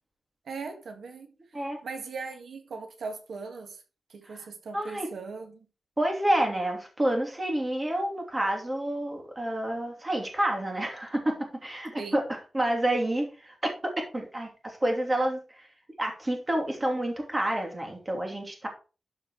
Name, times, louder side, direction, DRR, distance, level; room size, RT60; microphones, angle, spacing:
voice 1, 0.5-1.3 1.8-3.8 4.1-5.7 12.0-12.1, right 4 dB, 85° right, 1.7 m, -39 dB
voice 2, 4.7-5.1 6.0-11.4 11.6-13.5 13.8-15.7 16.0-18.7, right 1 dB, 20° right, 2.7 m, -29 dB
12.5 x 4.5 x 5.0 m
wide cardioid pair, 160°, 0 cm